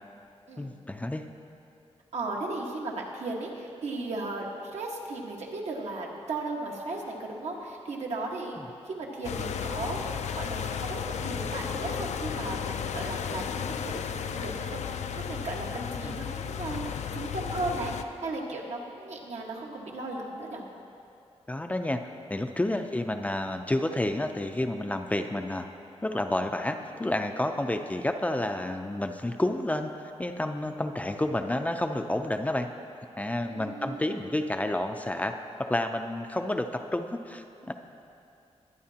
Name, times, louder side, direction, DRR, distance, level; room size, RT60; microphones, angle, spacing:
voice 1, 0.6-1.3 8.6-8.7 16.0-16.2 21.5-22.0 22.3-25.7 26.0-32.7 33.2-37.7, left 1 dB, 15° left, 5 dB, 0.4 m, -30 dB
voice 2, 2.1-8.6 8.9-20.6 33.4-34.2, right 2 dB, 80° right, -1 dB, 1.6 m, -36 dB
sound 1, 9.2-18.0, left 7 dB, 85° left, 0.4 m, -34 dB
21.5 x 9.5 x 2.8 m, 2.6 s
wide cardioid pair, 170°, 11 cm